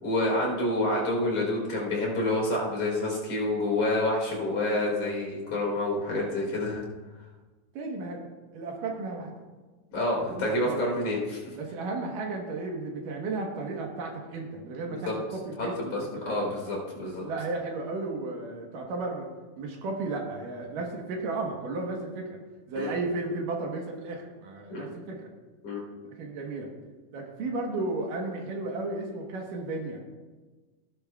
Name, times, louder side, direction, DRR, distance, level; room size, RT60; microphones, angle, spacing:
voice 1, 0.0-6.8 9.9-11.5 14.9-15.1 15.6-17.2 22.7-22.9 24.7-24.9 25.6-25.8, left 1 dB, 45° left, -3 dB, 4.8 m, -28 dB
voice 2, 7.7-8.3 8.5-9.3 10.3-10.9 11.6-16.5 17.2-19.3 19.6-22.4 22.7-25.3 26.0-26.7 27.1-30.0, right 3 dB, 75° right, 0 dB, 2.9 m, -34 dB
16.0 x 11.0 x 2.4 m, 1.3 s
omnidirectional pair, 4.0 m